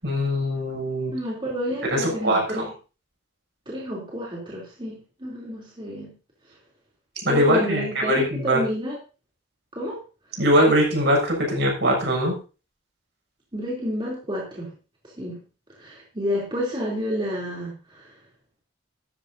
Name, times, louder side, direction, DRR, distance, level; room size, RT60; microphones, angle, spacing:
voice 1, 0.0-1.1 1.9-2.7 7.2-8.6 10.4-12.4, equal, 60° right, 0 dB, 7.2 m, -21 dB
voice 2, 1.1-2.7 3.6-6.1 7.3-9.0 9.7-10.0 13.5-14.7 15.2-15.4 15.8-18.2, equal, 25° right, -4 dB, 3.3 m, -30 dB
15.0 x 12.5 x 2.8 m, 0.34 s
head